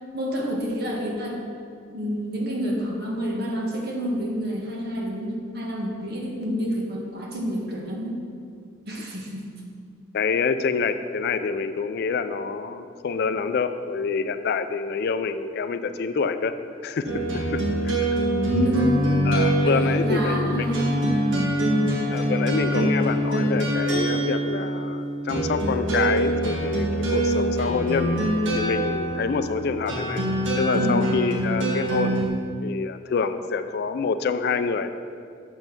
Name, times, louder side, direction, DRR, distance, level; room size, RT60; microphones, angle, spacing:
voice 1, 0.1-1.4 1.9-8.3 8.9-9.4 18.3-19.1 19.6-19.7 20.0-21.9 30.7-30.9, equal, 55° right, -1 dB, 1.4 m, -28 dB
voice 2, 10.1-16.5 16.8-17.1 17.8-17.9 19.3-20.7 22.1-28.2 28.5-30.2 30.6-32.2 32.6-34.9, left 5 dB, 55° left, 10 dB, 0.4 m, -26 dB
sound 1, 17.0-32.3, right 1 dB, 90° right, 1.5 m, -24 dB
7.1 x 5.5 x 6.0 m, 2.3 s
head